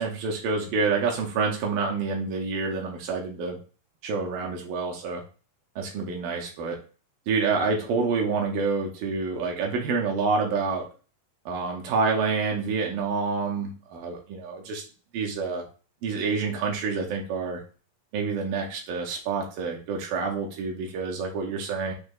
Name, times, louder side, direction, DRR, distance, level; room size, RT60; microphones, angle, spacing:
voice 1, 0.0-3.6 4.0-5.2 5.8-6.8 7.3-10.8 11.5-14.8 15.1-15.6 16.0-17.6 18.1-21.9, right 4 dB, 80° right, 0 dB, 2.4 m, -28 dB
6.4 x 2.7 x 2.2 m, 0.36 s
omnidirectional pair, 4.1 m